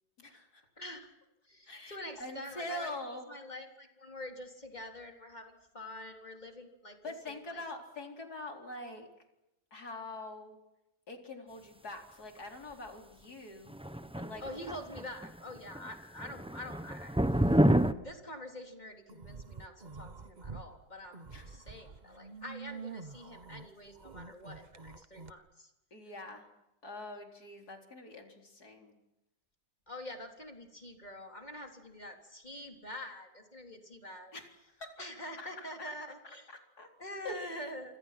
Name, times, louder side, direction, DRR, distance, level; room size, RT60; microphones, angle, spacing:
voice 1, 0.2-0.7 1.7-3.3 7.0-9.1 9.7-10.6 11.1-13.7 14.1-14.6 21.3-21.7 25.9-26.5 26.8-29.0 34.3-35.7 36.5-36.9 37.2-37.7, left 2 dB, 65° left, 3 dB, 4.6 m, -44 dB
voice 2, 0.8-1.1 1.5-2.9 3.3-7.0 7.3-7.6 14.4-17.5 17.9-25.7 29.9-34.3 35.0-36.5 37.0-38.0, left 1 dB, 25° left, 3 dB, 3.7 m, -46 dB
sound 1, 13.7-15.3 15.6-15.9 16.2-17.9, right 1 dB, 5° right, 0.7 m, -28 dB
sound 2, 19.1-20.7 21.0-25.3, right 5 dB, 30° right, 1.2 m, -47 dB
28.5 x 26.0 x 6.0 m, 0.92 s
omnidirectional pair, 1.8 m